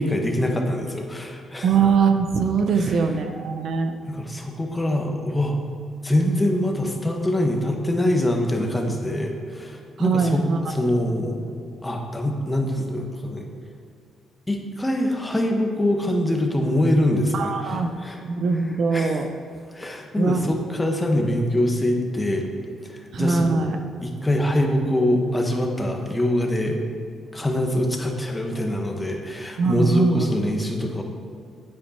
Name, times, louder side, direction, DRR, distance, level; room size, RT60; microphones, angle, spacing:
voice 1, 0.0-1.7 2.8-2.9 4.1-5.6 6.0-10.4 10.7-11.4 11.8-13.5 14.5-18.2 18.9-19.2 19.7-22.5 22.9-26.8 27.3-31.0, left 1 dB, 15° left, 2 dB, 1.4 m, -24 dB
voice 2, 1.6-3.9 10.0-10.6 17.3-17.9 18.3-19.3 20.2-20.5 23.1-23.8 29.6-30.2, right 5 dB, 65° right, 6 dB, 0.7 m, -21 dB
8.8 x 8.8 x 4.4 m, 2.3 s
cardioid pair, 90°, 0 cm